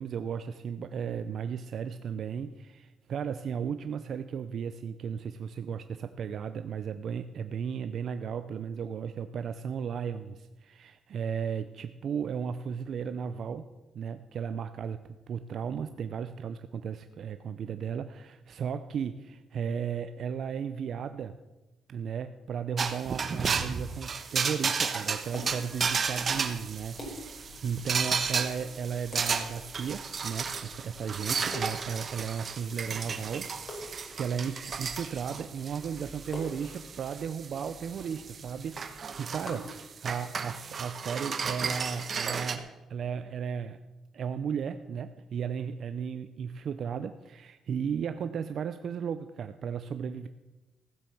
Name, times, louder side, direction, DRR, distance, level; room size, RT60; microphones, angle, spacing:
voice 1, 0.0-13.7 13.9-21.4 21.9-43.8 44.1-50.3, right 7 dB, 60° right, 10 dB, 0.6 m, -35 dB
sound 1, 22.8-42.6, right 5 dB, 45° right, 1.2 m, -33 dB
sound 2, 25.1-39.5, left 1 dB, 35° left, 5.0 m, -48 dB
15.0 x 7.7 x 7.0 m, 1.1 s
cardioid pair, 90°, 0 cm